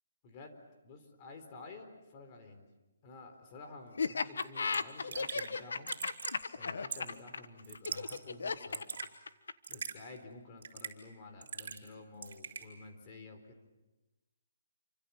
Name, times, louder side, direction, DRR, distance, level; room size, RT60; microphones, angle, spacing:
voice 1, 0.2-0.6 0.8-2.6 3.0-5.9 6.5-8.9 9.7-13.6, left 3 dB, 25° left, 4 dB, 4.0 m, -51 dB
Laughter, 4.0-9.7, left 4 dB, 80° left, 1.4 m, -35 dB
Raindrop / Drip, 4.4-4.5 4.7-4.8 5.1-5.5 5.9-6.4 6.9-7.2 7.6-8.2 8.5-9.1 9.6-10.0 10.6-11.0 11.4-11.9 12.2-12.7, right 6 dB, 60° right, 4.6 m, -41 dB
29.0 x 25.0 x 7.2 m, 1.1 s
hypercardioid pair, 170°, 0 cm